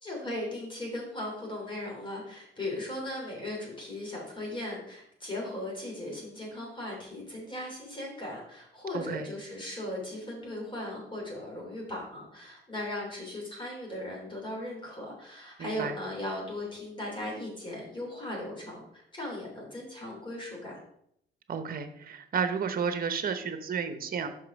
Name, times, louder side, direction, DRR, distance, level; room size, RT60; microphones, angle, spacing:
voice 1, 0.0-20.7, left 1 dB, 25° left, -2 dB, 3.2 m, -38 dB
voice 2, 8.9-9.3 15.6-15.9 21.5-24.3, right 6 dB, 45° right, 9 dB, 1.0 m, -32 dB
5.6 x 5.5 x 5.2 m, 0.73 s
cardioid pair, 90°, 20 cm